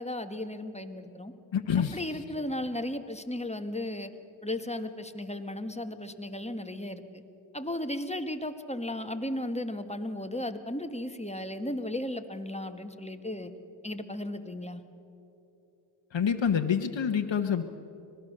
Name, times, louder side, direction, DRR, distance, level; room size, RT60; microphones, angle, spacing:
voice 1, 0.0-1.3 1.8-4.1 4.4-7.2 7.5-13.5 13.8-14.8, left 1 dB, 15° left, 8 dB, 1.5 m, -35 dB
voice 2, 1.5-2.0 16.1-17.6, left 7 dB, 65° left, 5 dB, 1.1 m, -27 dB
25.0 x 18.5 x 6.6 m, 2.9 s
cardioid pair, 40°, 48 cm